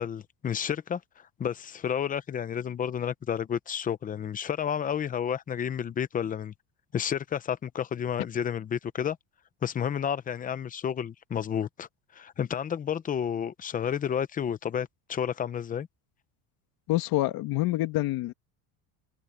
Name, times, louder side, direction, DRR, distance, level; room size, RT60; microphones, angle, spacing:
voice 1, 0.0-6.5 6.9-9.2 9.6-15.9, left 8 dB, 20° left, 0.6 m, -31 dB
voice 2, 16.9-18.3, left 17 dB, 60° left, 2.1 m, -27 dB
cardioid pair, 165°, 42 cm